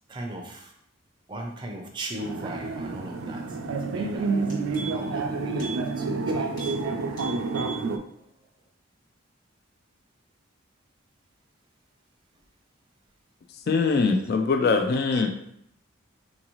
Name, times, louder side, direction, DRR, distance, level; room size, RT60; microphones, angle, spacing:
voice 1, 0.1-0.7 1.3-3.6 3.9-4.6 4.9-6.7, right 1 dB, 25° right, 1 dB, 0.5 m, -38 dB
sound 1, 2.2-8.0, right 3 dB, 80° right, 0.4 m, -29 dB
Maquina botones, 4.5-5.2 5.5-5.8 6.1-6.2 6.5-6.8 7.1-7.8 8.2-8.3, right 5 dB, 20° left, 1.2 m, -39 dB
voice 2, 13.7-15.3, left 4 dB, 50° left, 5 dB, 0.3 m, -22 dB
3.9 x 2.6 x 3.0 m, 0.72 s
head